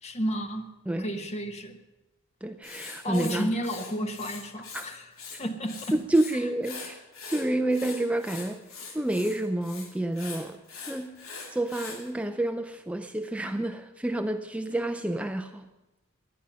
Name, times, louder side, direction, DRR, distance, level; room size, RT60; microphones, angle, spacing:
voice 1, 0.0-0.7 1.0-1.8 3.0-5.1 5.4-6.0, equal, 35° left, 7 dB, 1.3 m, -32 dB
voice 2, 2.4-3.5 4.7-4.8 5.3-5.4 5.9-7.0 7.3-8.6 8.9-10.6 10.9-11.2 11.5-15.7, right 1 dB, 5° right, 7 dB, 0.5 m, -29 dB
Writing, 2.6-4.9 5.1-6.3 6.6-12.0, left 5 dB, 80° left, 2.7 m, -42 dB
18.0 x 11.0 x 5.6 m, 1.0 s
head